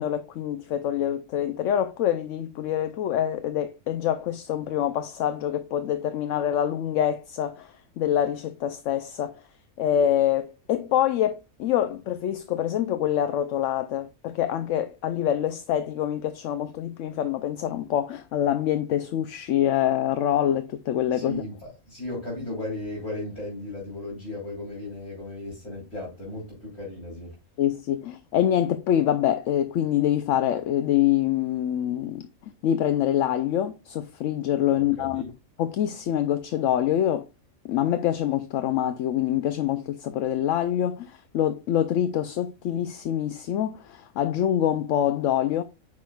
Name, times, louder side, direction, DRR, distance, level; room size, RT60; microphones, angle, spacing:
voice 1, 0.0-9.3 9.8-21.3 27.6-32.3 32.6-35.2 35.6-37.2 37.7-45.6, left 11 dB, 70° left, 0.9 m, -25 dB
voice 2, 21.1-27.4 34.8-35.3, left 2 dB, 50° left, 3.7 m, -36 dB
8.5 x 5.9 x 2.3 m
omnidirectional pair, 1.4 m